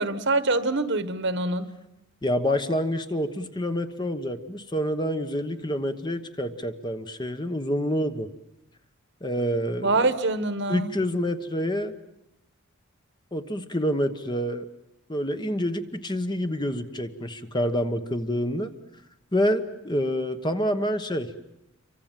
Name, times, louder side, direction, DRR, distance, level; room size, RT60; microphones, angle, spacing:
voice 1, 0.0-1.7 9.8-10.9, right 2 dB, 50° right, 12 dB, 1.4 m, -25 dB
voice 2, 2.2-8.3 9.2-10.0 10.7-11.9 13.3-14.7 15.1-18.7 19.3-21.3, equal, 20° left, 8 dB, 1.1 m, -27 dB
27.5 x 24.5 x 7.5 m, 0.88 s
head